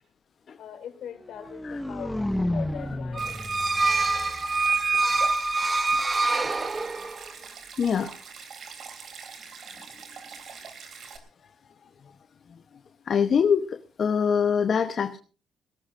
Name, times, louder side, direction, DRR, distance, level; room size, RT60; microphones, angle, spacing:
voice 1, 0.6-3.5, left 8 dB, 75° left, 6 dB, 3.0 m, -41 dB
sound 1, 1.2-5.2, left 1 dB, 10° left, 0.7 m, -32 dB
sound 2, 3.1-7.3, right 3 dB, 25° right, 0.9 m, -25 dB
Stream, 3.2-11.2, right 5 dB, 60° right, 3.5 m, -44 dB
voice 2, 4.6-5.2 7.8-8.1 13.1-15.2, left 7 dB, 55° left, 8 dB, 1.0 m, -24 dB
21.5 x 18.0 x 2.6 m, 0.35 s
cardioid pair, 85°, 0 cm